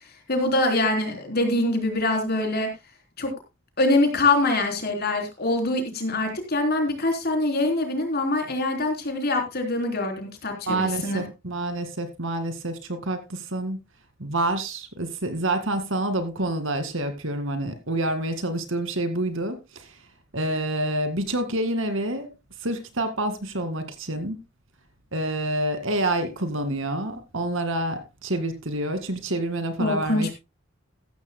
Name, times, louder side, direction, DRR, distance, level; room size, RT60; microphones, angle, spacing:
voice 1, 0.3-2.7 3.2-3.3 3.8-11.3 29.8-30.3, left 2 dB, 50° left, 3.6 m, -24 dB
voice 2, 10.7-13.8 14.2-19.9 20.3-22.3 22.6-24.4 25.1-30.3, right 1 dB, 70° right, 2.1 m, -28 dB
14.5 x 13.5 x 2.2 m
head